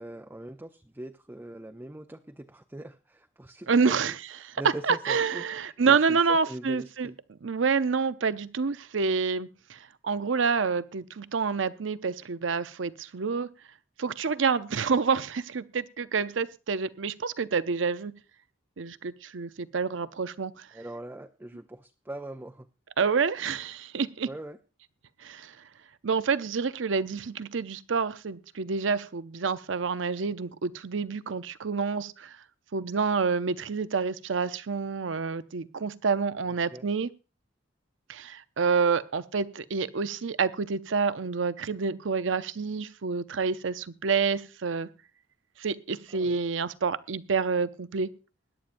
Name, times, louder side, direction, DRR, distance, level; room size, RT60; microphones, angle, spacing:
voice 1, 0.0-4.1 4.6-7.2 20.7-22.7 24.3-24.6 36.7-36.9 46.1-46.4, right 1 dB, 10° right, 0.5 m, -41 dB
voice 2, 3.7-4.2 4.4-4.6 4.8-7.1 7.4-13.5 14.0-18.1 18.8-20.7 23.0-24.3 25.2-25.5 26.0-32.3 32.7-37.1 38.1-44.9 45.6-48.1, right 5 dB, 85° right, 0.6 m, -28 dB
21.5 x 10.5 x 2.6 m
head